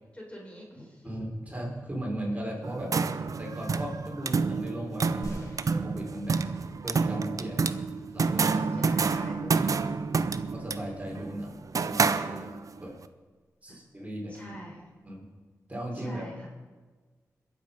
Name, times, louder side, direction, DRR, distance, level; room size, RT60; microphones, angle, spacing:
voice 1, 0.1-1.1 6.3-6.5 8.7-9.4 11.1-11.3 13.7-13.8 14.3-14.8 15.9-16.5, equal, 20° left, -1 dB, 4.0 m, -44 dB
voice 2, 1.0-2.9 3.4-6.4 6.8-7.8 8.1-8.8 9.3-9.7 10.5-11.5 11.8-12.9 13.6-14.4 15.0-15.3 15.7-16.3, right 1 dB, 20° right, -2 dB, 4.2 m, -37 dB
sound 1, 2.6-12.8, right 4 dB, 65° right, 0.6 m, -29 dB
sound 2, 5.2-7.0 7.5-7.6, equal, 65° left, 3.9 m, -46 dB
21.5 x 7.7 x 5.3 m, 1.3 s
cardioid pair, 55°, 6 cm